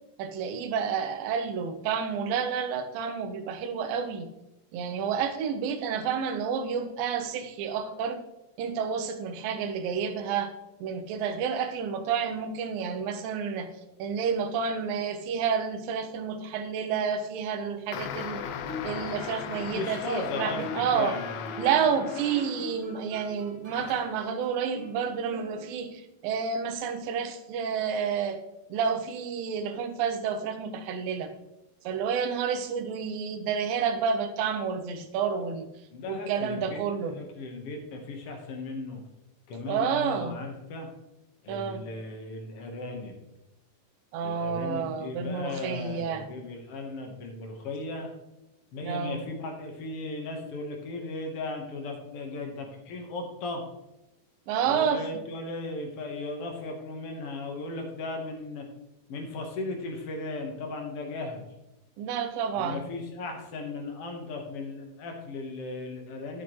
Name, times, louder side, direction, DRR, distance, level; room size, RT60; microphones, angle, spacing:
voice 1, 0.2-4.3 4.7-8.2 8.6-10.5 10.8-13.7 14.0-18.5 18.8-21.2 21.6-28.4 28.7-31.3 31.8-35.7 36.1-37.2 39.7-40.4 41.5-41.8 44.1-46.3 48.8-49.2 54.5-55.2 62.0-62.9, right 6 dB, 75° right, 6 dB, 2.4 m, -30 dB
sound 1, 17.9-23.0 23.7-24.2, left 8 dB, 80° left, 2.3 m, -38 dB
Guitar, 18.4-26.1, left 2 dB, 55° right, 1.3 m, -44 dB
voice 2, 19.7-21.5 35.9-39.0 39.5-40.9 41.4-43.1 44.2-48.1 48.7-53.6 54.6-58.7 59.1-61.4 62.6-66.4, left 2 dB, 65° left, 3 dB, 1.5 m, -36 dB
13.5 x 6.3 x 3.1 m, 0.94 s
omnidirectional pair, 4.4 m